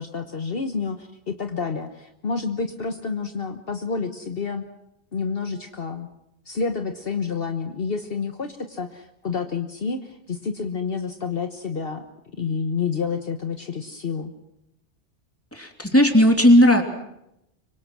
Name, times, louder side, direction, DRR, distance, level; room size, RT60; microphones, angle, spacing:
voice 1, 0.0-4.6 5.1-6.1 6.5-12.0 12.4-14.3, left 5 dB, 55° left, 7 dB, 1.4 m, -29 dB
voice 2, 15.5-16.8, equal, 10° left, 4 dB, 3.0 m, -15 dB
26.0 x 24.5 x 6.2 m, 0.83 s
omnidirectional pair, 1.1 m